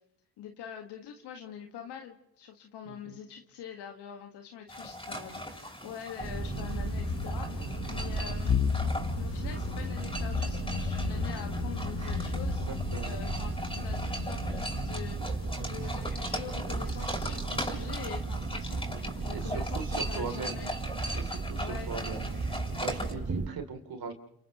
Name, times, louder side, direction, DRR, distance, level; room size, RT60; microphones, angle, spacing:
voice 1, 0.4-8.6 9.1-12.8 13.0-13.5 13.8-20.7 21.6-21.9 22.2-22.4, left 8 dB, 75° left, 3 dB, 1.8 m, -44 dB
voice 2, 2.8-3.2 8.1-8.3 12.5-13.2 13.8-14.0 19.3-20.6 21.1-22.5 22.8-24.1, right 5 dB, 60° right, 4 dB, 3.3 m, -40 dB
sound 1, 4.7-23.1, equal, 10° left, 6.4 m, -40 dB
sound 2, 6.2-23.5, right 4 dB, 40° right, 2.1 m, -35 dB
sound 3, 6.3-15.1, left 7 dB, 35° left, 0.9 m, -35 dB
29.5 x 28.5 x 3.1 m, 0.75 s
supercardioid pair, 50°, 40 cm